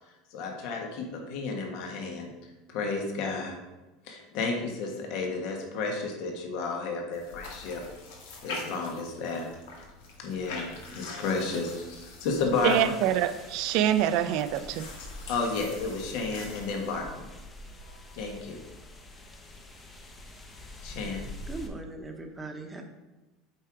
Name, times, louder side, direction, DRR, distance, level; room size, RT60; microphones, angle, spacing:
voice 1, 0.3-2.3 2.7-3.6 4.0-7.8 8.4-9.5 10.2-11.9 12.2-12.8 15.3-17.3 18.1-18.6 20.8-21.2, left 4 dB, 60° left, 2 dB, 1.4 m, -32 dB
sound 1, 7.1-17.0, left 3 dB, 90° left, 1.8 m, -44 dB
sound 2, 12.5-21.7, left 1 dB, 20° left, 0.9 m, -46 dB
voice 2, 12.6-14.9, right 11 dB, 60° right, 11 dB, 0.6 m, -25 dB
voice 3, 21.5-22.8, right 3 dB, 10° right, 3 dB, 1.0 m, -39 dB
7.7 x 4.7 x 4.9 m, 1.1 s
supercardioid pair, 145°, 0 cm